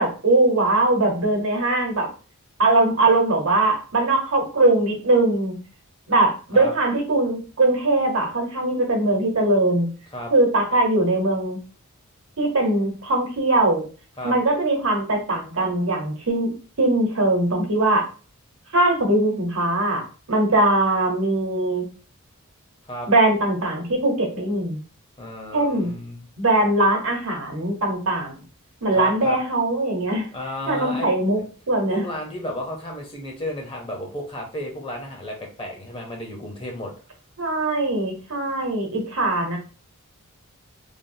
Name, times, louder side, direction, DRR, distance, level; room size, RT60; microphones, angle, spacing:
voice 1, 0.0-2.1 2.6-5.6 6.1-9.9 10.3-11.6 12.4-13.9 14.2-16.5 16.8-18.1 18.7-21.8 23.1-24.8 25.5-25.9 26.4-28.4 28.8-30.3 30.7-31.4 31.7-32.0 37.4-39.6, right 2 dB, 85° right, 1 dB, 1.0 m, -21 dB
voice 2, 25.2-26.2 28.9-29.4 30.3-31.4 31.9-36.9, equal, 25° left, 0 dB, 0.7 m, -33 dB
3.4 x 2.1 x 2.6 m, 0.36 s
head